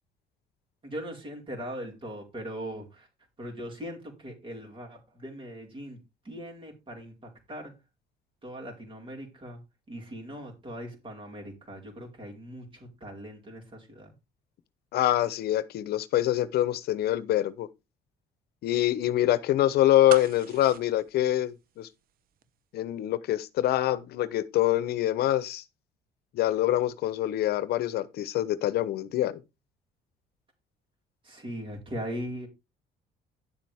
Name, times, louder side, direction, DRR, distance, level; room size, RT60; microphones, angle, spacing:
voice 1, 0.8-3.1 3.4-6.0 6.2-7.7 8.4-9.6 9.9-14.1 31.2-32.5, equal, 30° right, 4.7 m, -40 dB
voice 2, 14.9-17.7 18.6-21.9 22.7-25.6 26.3-29.4, left 13 dB, 70° left, 0.9 m, -25 dB
sound 1, 20.1-22.1 22.4-22.5, right 10 dB, 60° right, 0.8 m, -39 dB
10.5 x 7.5 x 3.5 m
cardioid pair, 110°, 17 cm